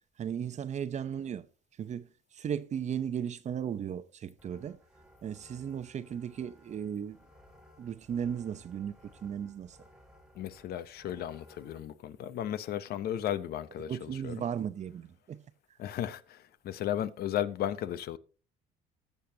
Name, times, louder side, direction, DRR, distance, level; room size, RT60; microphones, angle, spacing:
voice 1, 0.2-1.5 1.8-2.1 2.3-4.8 5.2-7.2 7.8-9.8 13.9-15.4, right 8 dB, 45° right, 0.7 m, -36 dB
sound 1, 4.4-11.8, left 1 dB, 5° right, 1.4 m, -59 dB
voice 2, 10.3-14.5 15.8-18.2, left 11 dB, 65° left, 0.8 m, -35 dB
19.0 x 6.8 x 2.8 m
cardioid pair, 110°, 17 cm